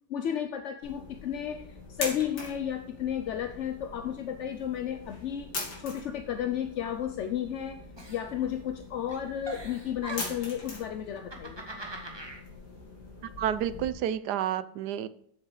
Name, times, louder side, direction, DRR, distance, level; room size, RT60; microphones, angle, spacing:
voice 1, 0.1-5.5 5.8-7.8 8.1-11.6, left 9 dB, 60° left, 8 dB, 0.8 m, -33 dB
sound 1, 0.8-13.9, left 3 dB, 85° left, 2.9 m, -43 dB
Giggle, 8.0-8.8 9.1-10.6 11.1-12.4, right 2 dB, 15° right, 1.4 m, -42 dB
voice 2, 13.4-15.1, right 10 dB, 80° right, 15 dB, 1.2 m, -30 dB
8.3 x 6.6 x 4.8 m, 0.69 s
omnidirectional pair, 1.8 m